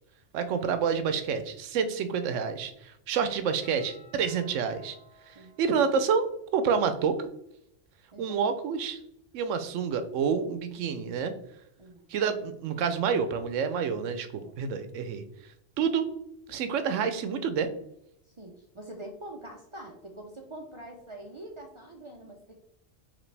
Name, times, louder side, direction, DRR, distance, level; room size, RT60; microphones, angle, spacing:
voice 1, 0.3-5.0 5.3-7.3 8.2-9.0 9.3-11.3 12.1-15.2 15.8-16.1 16.5-17.7, right 6 dB, 85° right, 10 dB, 0.9 m, -28 dB
Doorbell, 3.6-6.5, equal, 50° left, 1.9 m, -56 dB
voice 2, 11.8-12.1 14.0-14.6 18.2-22.6, right 1 dB, 50° right, 1 dB, 0.3 m, -45 dB
5.1 x 3.0 x 3.2 m, 0.78 s
omnidirectional pair, 1.3 m